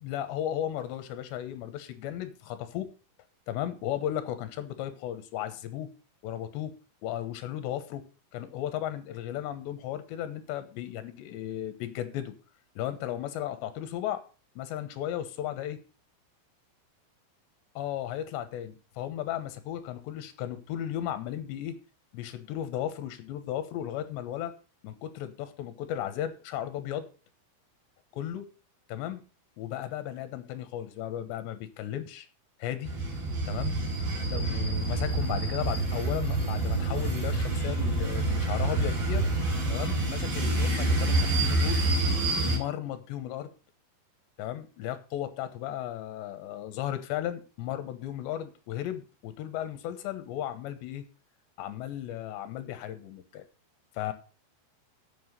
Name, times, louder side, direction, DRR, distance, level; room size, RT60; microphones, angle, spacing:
voice 1, 0.0-2.9 3.5-5.9 6.2-6.7 7.0-8.0 8.3-12.3 12.8-14.2 14.6-15.8 17.8-21.8 22.1-24.5 24.8-27.1 28.1-28.5 28.9-29.2 29.6-32.3 32.6-32.9 33.5-33.8 34.2-39.3 39.7-41.8 42.4-43.5 44.4-51.1 51.6-53.4 53.9-54.1, left 11 dB, 75° left, 10 dB, 3.2 m, -35 dB
sound 1, 32.8-42.6, right 2 dB, 35° right, 4.6 m, -27 dB
7.9 x 7.6 x 6.5 m, 0.35 s
omnidirectional pair, 5.3 m